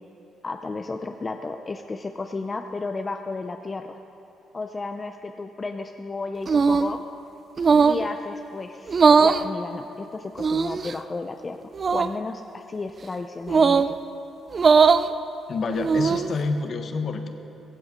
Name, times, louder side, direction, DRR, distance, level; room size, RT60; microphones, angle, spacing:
voice 1, 0.4-4.0 4.5-7.1 7.8-11.6 11.9-13.8, left 3 dB, 30° left, 5 dB, 0.6 m, -33 dB
sound 1, 6.5-7.0 7.6-8.1 8.9-9.4 10.4-10.9 11.8-12.1 13.5-13.9 14.5-15.1 15.7-16.3, right 5 dB, 40° right, 0.5 m, -19 dB
voice 2, 15.5-17.3, left 4 dB, 50° left, 6 dB, 1.3 m, -28 dB
16.5 x 16.0 x 5.3 m, 3.0 s
cardioid pair, 95°, 0 cm